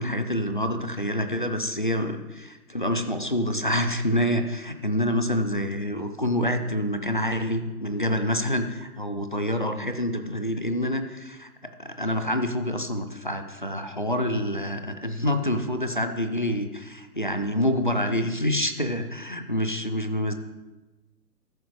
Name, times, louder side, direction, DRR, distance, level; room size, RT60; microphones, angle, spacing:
voice 1, 0.0-20.3, left 1 dB, 35° left, 7 dB, 0.5 m, -27 dB
13.5 x 5.7 x 4.6 m, 1.1 s
hypercardioid pair, 170°, 47 cm